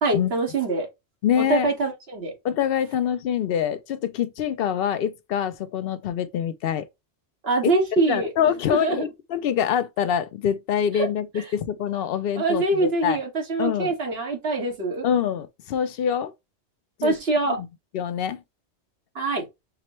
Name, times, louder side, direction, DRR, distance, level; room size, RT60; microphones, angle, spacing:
voice 1, 0.0-0.9 1.4-2.3 7.4-8.3 8.7-9.0 10.9-11.1 11.3-11.4 12.3-15.0 17.0-17.6 19.1-19.4, right 2 dB, 60° right, 1.7 m, -24 dB
voice 2, 1.2-1.7 2.4-6.9 7.6-7.7 8.1-13.2 13.6-13.9 15.0-16.3 17.0-17.1 17.5-17.6 17.9-18.4, left 9 dB, 65° left, 0.7 m, -25 dB
5.9 x 2.1 x 2.9 m
omnidirectional pair, 1.2 m